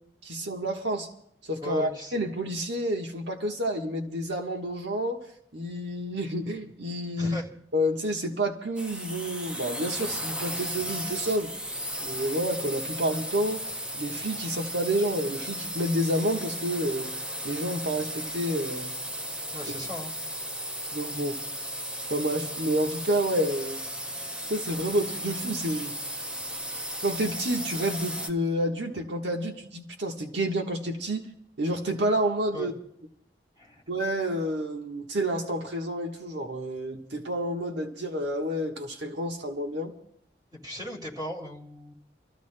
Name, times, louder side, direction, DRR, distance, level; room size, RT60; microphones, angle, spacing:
voice 1, 0.2-1.1 1.5-5.2 5.5-7.4 7.7-11.5 12.0-13.6 13.9-17.1 17.4-18.9 20.9-21.4 22.1-23.8 24.5-25.9 27.0-31.2 31.6-32.7 33.9-39.9, right 1 dB, 75° right, 2 dB, 1.3 m, -29 dB
voice 2, 1.6-2.2 7.2-7.5 19.5-20.1 32.5-32.7 33.6-33.8 40.5-41.9, left 1 dB, 25° right, -1 dB, 2.7 m, -37 dB
sound 1, 8.8-28.3, equal, 5° right, 0.6 m, -35 dB
29.5 x 14.5 x 2.2 m, 0.73 s
head